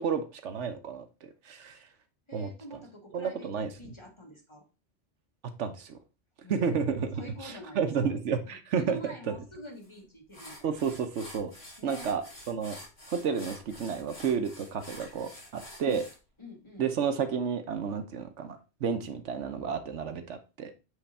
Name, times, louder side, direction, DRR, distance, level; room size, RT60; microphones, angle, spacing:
voice 1, 0.0-1.9 2.3-2.5 3.1-3.9 5.6-6.0 6.5-9.3 10.6-11.5 11.8-12.8 13.1-16.0 16.8-20.7, right 6 dB, 70° right, 8 dB, 1.1 m, -31 dB
voice 2, 2.3-4.7 6.4-6.8 7.1-7.9 8.4-10.7 11.8-12.1 15.8-16.0 16.4-16.9, equal, 25° left, 2 dB, 1.5 m, -46 dB
sound 1, 9.8-9.9 10.3-16.2, left 1 dB, 80° left, 4.1 m, -48 dB
8.0 x 3.4 x 4.1 m, 0.30 s
omnidirectional pair, 1.3 m